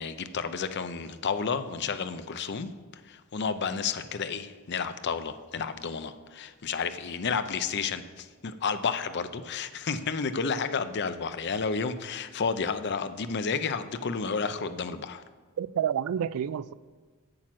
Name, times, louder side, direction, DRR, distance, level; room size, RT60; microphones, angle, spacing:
voice 1, 0.0-2.7 3.1-15.2, left 5 dB, 50° left, 11 dB, 0.6 m, -31 dB
voice 2, 15.6-16.7, right 9 dB, 75° right, 18 dB, 0.3 m, -29 dB
8.7 x 7.7 x 6.1 m, 1.4 s
head